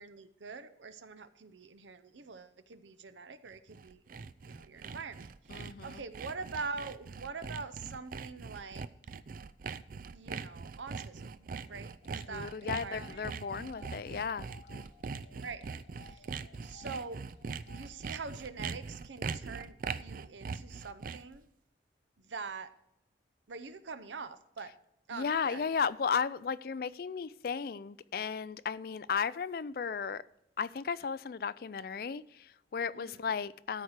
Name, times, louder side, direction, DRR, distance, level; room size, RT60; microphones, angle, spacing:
voice 1, 0.0-4.0 4.4-8.9 10.1-13.2 13.7-13.9 15.4-15.6 16.0-16.3 16.6-17.2 17.7-21.5 22.2-22.7 23.5-24.7 25.1-25.7 32.9-33.3, right 4 dB, 90° right, 0.7 m, -44 dB
Sawing, 3.5-21.4, right 5 dB, 50° right, 0.4 m, -42 dB
voice 2, 5.5-6.0 12.3-14.5 25.1-30.2 30.6-33.8, left 6 dB, 55° left, 0.4 m, -35 dB
sound 1, 12.0-18.2, left 4 dB, 90° left, 1.4 m, -59 dB
13.5 x 4.7 x 6.5 m
head